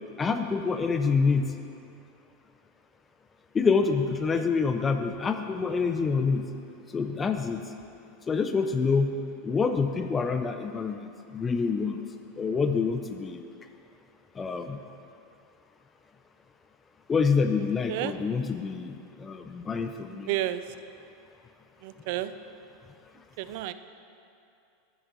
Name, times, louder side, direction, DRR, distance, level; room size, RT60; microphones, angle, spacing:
voice 1, 0.2-1.5 3.5-6.5 6.9-7.6 8.3-9.1 9.4-11.0 11.3-12.0 12.4-13.4 14.4-14.8 17.1-20.3, left 5 dB, 20° left, 6 dB, 0.4 m, -26 dB
voice 2, 20.3-20.6 21.8-22.3 23.4-23.7, right 14 dB, 60° right, 12 dB, 0.3 m, -31 dB
9.9 x 4.0 x 6.0 m, 2.6 s
hypercardioid pair, 105°, 0 cm